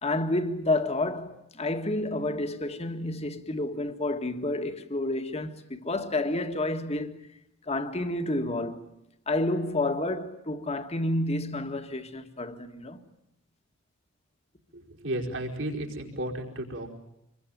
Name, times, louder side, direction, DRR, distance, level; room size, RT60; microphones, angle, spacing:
voice 1, 0.0-7.3 7.7-8.8 9.3-13.0, left 2 dB, 30° left, 1.8 m, -30 dB
voice 2, 14.7-16.9, right 1 dB, 70° right, 4.7 m, -33 dB
26.5 x 22.5 x 9.4 m
head